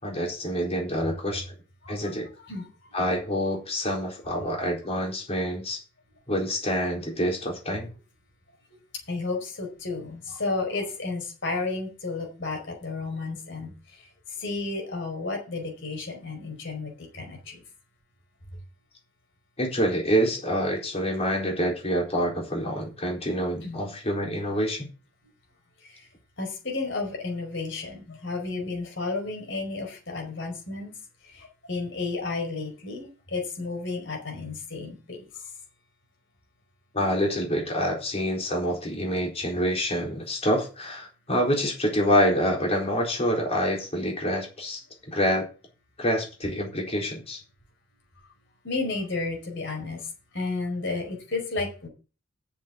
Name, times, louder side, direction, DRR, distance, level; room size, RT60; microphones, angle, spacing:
voice 1, 0.0-1.4 1.9-2.3 2.9-5.8 6.3-7.9 19.6-24.9 36.9-44.8 45.1-45.5 46.0-47.4, equal, 30° left, 4.2 m, -26 dB
voice 2, 9.1-17.6 23.6-23.8 25.8-26.0 26.4-30.9 31.2-35.2 48.6-51.9, left 3 dB, 65° left, 5.1 m, -32 dB
7.5 x 7.4 x 8.0 m
head